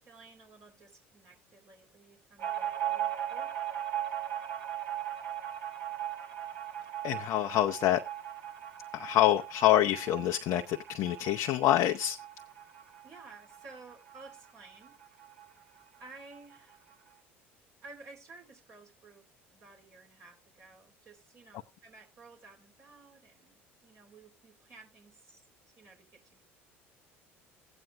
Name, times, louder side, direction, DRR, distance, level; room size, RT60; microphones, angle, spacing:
voice 1, 0.0-3.5 13.0-14.9 16.0-16.8 17.8-25.4 25.8-26.4, right 3 dB, 45° right, 3.2 m, -54 dB
sound 1, 2.4-15.5 15.8-15.9 16.2-16.9, right 11 dB, 65° right, 2.7 m, -38 dB
voice 2, 7.0-8.0 8.9-12.2, left 12 dB, 55° left, 0.6 m, -26 dB
16.5 x 9.0 x 2.2 m
hypercardioid pair, 65°, 6 cm